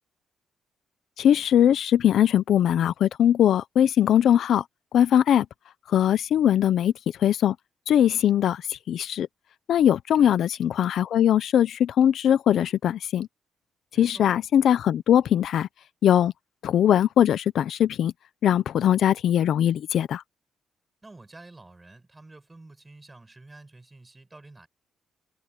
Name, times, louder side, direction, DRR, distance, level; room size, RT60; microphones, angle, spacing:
voice 1, 1.2-4.6 4.9-5.5 5.9-6.9 7.2-7.5 7.9-9.3 9.7-13.3 14.0-15.7 16.0-16.3 16.6-18.1 18.4-20.2, left 10 dB, 70° left, 0.7 m, -21 dB
voice 2, 13.9-14.3 21.0-24.7, right 2 dB, 15° right, 7.9 m, -49 dB
cardioid pair, 115°, 0 cm